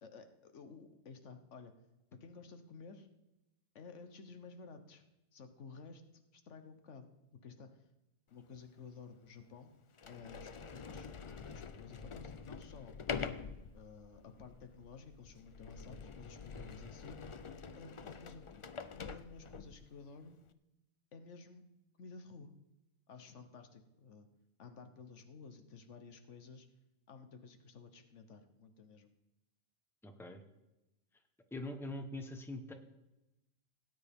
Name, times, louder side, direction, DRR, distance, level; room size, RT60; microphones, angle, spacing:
voice 1, 0.0-1.7 2.2-3.1 3.7-5.0 5.3-6.0 6.3-7.0 7.4-7.8 8.3-9.7 10.0-11.1 11.4-13.0 13.7-17.2 17.8-20.4 21.1-21.6 22.0-22.5 23.1-24.3 24.6-26.7 27.1-29.1, left 4 dB, 80° left, 8 dB, 1.3 m, -53 dB
Sliding door, 8.6-8.7 9.4-9.5 9.9-19.9, left 5 dB, 45° left, 0.4 m, -46 dB
voice 2, 30.0-30.4 31.5-32.7, left 1 dB, ahead, 6 dB, 0.9 m, -43 dB
17.5 x 9.6 x 3.5 m, 0.94 s
omnidirectional pair, 1.2 m